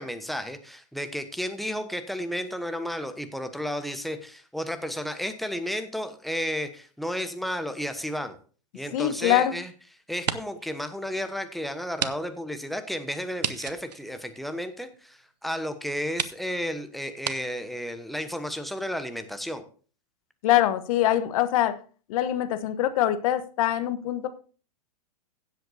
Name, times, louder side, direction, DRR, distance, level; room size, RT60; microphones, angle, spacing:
voice 1, 0.0-8.4 8.7-9.7 10.1-19.6, equal, ahead, 8 dB, 1.1 m, -32 dB
sound 1, 8.8-9.7 10.1-10.7 11.1-11.2 12.0-12.2 12.4-12.5 13.4-15.0 15.6-15.7 16.1-16.4 17.2-17.4, right 8 dB, 85° right, 0.7 m, -33 dB
voice 2, 8.9-9.5 20.4-21.7 22.1-24.3, left 12 dB, 55° left, 12 dB, 1.1 m, -23 dB
16.0 x 8.0 x 2.7 m, 0.39 s
hypercardioid pair, 115°, 21 cm